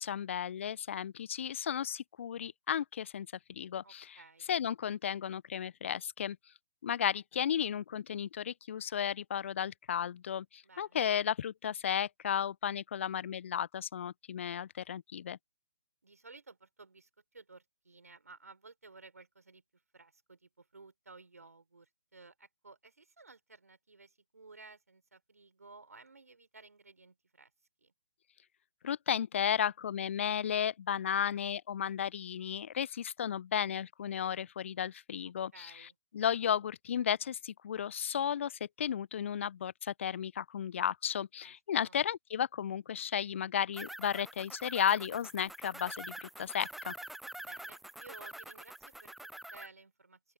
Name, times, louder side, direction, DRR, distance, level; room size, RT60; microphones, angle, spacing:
voice 1, 0.0-4.2 4.5-6.4 6.8-15.4 28.8-35.9 36.1-46.9, left 9 dB, 50° left, 0.6 m, -34 dB
voice 2, 3.8-4.5 10.6-11.0 16.0-19.6 19.9-27.5 27.8-27.9 35.2-35.9 41.4-42.0 47.4-50.3, right 3 dB, 75° right, 5.6 m, -56 dB
sound 1, 43.7-49.7, right 1 dB, ahead, 0.3 m, -46 dB
open air
figure-of-eight pair, 130°, 8 cm